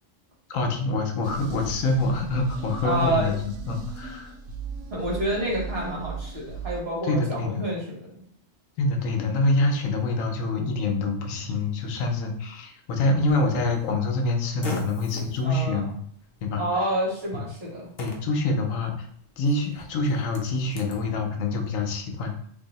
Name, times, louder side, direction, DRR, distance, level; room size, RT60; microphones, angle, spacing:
voice 1, 0.5-4.3 7.1-7.7 8.8-16.0 16.4-16.6 18.0-19.1 19.4-22.5, left 2 dB, 85° left, 2 dB, 1.1 m, -26 dB
sound 1, 1.2-6.8, right 4 dB, 70° right, 0.9 m, -37 dB
voice 2, 2.8-3.5 4.9-8.2 15.4-15.8 16.6-17.9, right 1 dB, 50° right, -4 dB, 1.3 m, -28 dB
Fart, 13.3-21.0, equal, 55° left, 0.8 m, -43 dB
2.7 x 2.6 x 4.0 m, 0.62 s
omnidirectional pair, 1.3 m